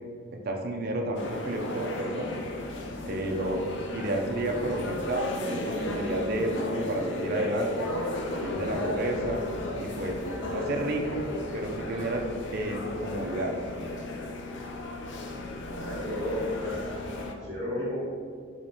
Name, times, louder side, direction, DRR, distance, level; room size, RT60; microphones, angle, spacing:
voice 1, 0.3-2.4 3.1-3.7 3.9-7.9 8.3-9.4 9.8-10.2 10.5-11.3 11.5-12.2 12.5-13.6, right 1 dB, 45° right, 1 dB, 0.4 m, -31 dB
sound 1, 1.1-17.3, left 1 dB, 60° left, 0.4 m, -34 dB
voice 2, 15.8-18.0, left 1 dB, 15° left, -14 dB, 1.3 m, -34 dB
5.1 x 3.0 x 2.7 m, 2.1 s
head